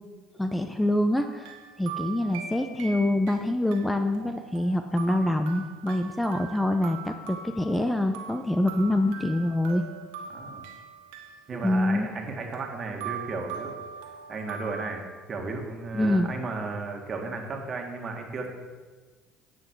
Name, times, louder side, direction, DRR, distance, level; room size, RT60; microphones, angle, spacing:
voice 1, 0.4-9.8 11.6-12.1 15.9-16.3, left 1 dB, 10° left, 7 dB, 0.6 m, -25 dB
sound 1, 1.1-3.4 3.7-14.9, right 7 dB, 85° right, 1.2 m, -42 dB
voice 2, 10.3-10.6 11.5-18.5, right 3 dB, 40° right, 2 dB, 1.9 m, -34 dB
10.0 x 7.8 x 4.7 m, 1.4 s
supercardioid pair, 75°, 0 cm